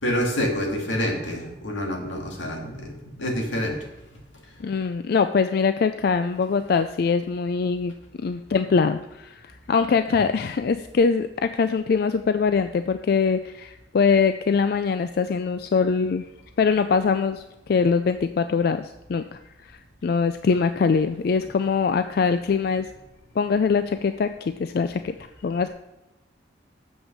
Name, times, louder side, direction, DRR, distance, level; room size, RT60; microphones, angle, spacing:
voice 1, 0.0-3.8 4.6-4.7, equal, 85° left, 1 dB, 2.0 m, -27 dB
voice 2, 4.6-7.9 8.2-16.3 16.6-22.9 23.4-25.1 25.4-25.7, left 5 dB, 55° left, 10 dB, 0.3 m, -23 dB
7.2 x 6.0 x 6.5 m, 0.99 s
head